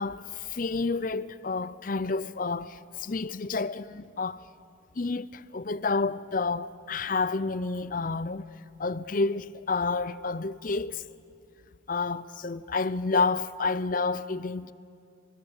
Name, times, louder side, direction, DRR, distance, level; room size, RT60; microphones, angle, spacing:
voice 1, 0.0-4.4 4.9-8.5 8.8-11.1 11.9-14.7, left 3 dB, 40° left, 0.6 m, -29 dB
26.5 x 24.0 x 7.3 m
head